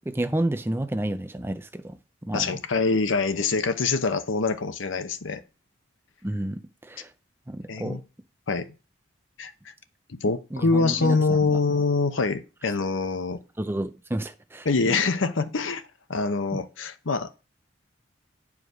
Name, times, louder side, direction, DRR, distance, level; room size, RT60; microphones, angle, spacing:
voice 1, 0.1-2.5 6.2-7.1 7.5-8.0 10.5-11.6 13.6-14.7 16.5-16.6, right 1 dB, 10° right, 0.5 m, -30 dB
voice 2, 2.3-5.4 7.7-8.0 8.5-8.7 9.4-9.5 10.1-13.4 14.6-15.8 16.1-17.4, left 4 dB, 75° left, 0.8 m, -25 dB
9.4 x 4.9 x 5.0 m
head